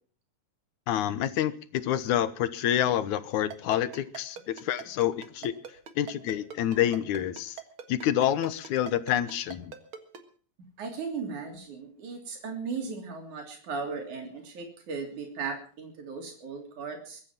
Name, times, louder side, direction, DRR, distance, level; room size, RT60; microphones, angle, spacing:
voice 1, 0.9-5.5 6.0-7.5 7.9-9.7, left 11 dB, 85° left, 2.5 m, -28 dB
Ringtone, 3.5-10.2, right 8 dB, 50° right, 2.2 m, -41 dB
voice 2, 10.8-17.2, right 5 dB, 90° right, 4.6 m, -37 dB
22.5 x 9.8 x 5.9 m
omnidirectional pair, 3.3 m